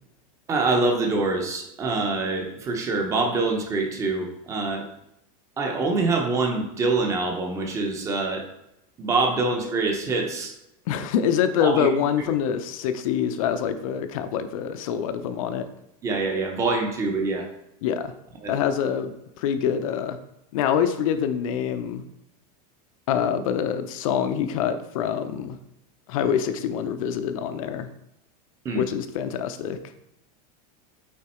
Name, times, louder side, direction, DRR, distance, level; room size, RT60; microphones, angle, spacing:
voice 1, 0.5-4.9 5.6-8.5 9.0-10.5 11.6-11.9 16.0-17.5 18.4-18.5 28.6-28.8, right 3 dB, 15° right, 2 dB, 0.8 m, -25 dB
voice 2, 10.9-15.7 17.8-18.1 18.5-20.2 20.5-22.0 23.1-25.6 26.1-27.9 28.7-29.8, left 8 dB, 55° left, 10 dB, 0.7 m, -25 dB
8.6 x 4.0 x 4.3 m, 0.84 s
supercardioid pair, 180°, 21 cm